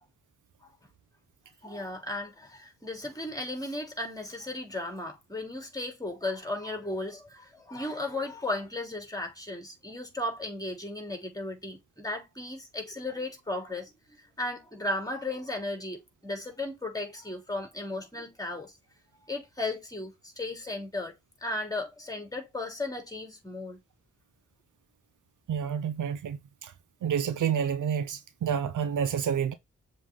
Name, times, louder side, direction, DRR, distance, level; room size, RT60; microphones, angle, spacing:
voice 1, 1.6-13.9 14.4-18.7 19.3-21.1 21.4-23.8, left 2 dB, 10° left, 3.5 m, -35 dB
voice 2, 25.5-26.7 27.0-29.5, right 8 dB, 65° right, 0.8 m, -29 dB
7.1 x 4.0 x 3.9 m
supercardioid pair, 40°, 33 cm